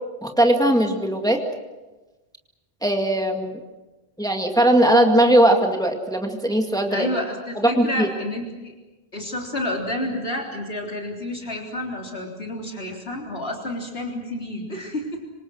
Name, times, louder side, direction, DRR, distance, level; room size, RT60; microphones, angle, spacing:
voice 1, 0.2-1.4 2.8-3.6 4.2-7.1 7.8-8.1, right 1 dB, 5° left, 3 dB, 2.1 m, -19 dB
voice 2, 6.9-8.7 9.1-15.2, left 1 dB, 70° left, 0 dB, 4.0 m, -30 dB
26.5 x 25.5 x 6.4 m, 1.1 s
omnidirectional pair, 1.1 m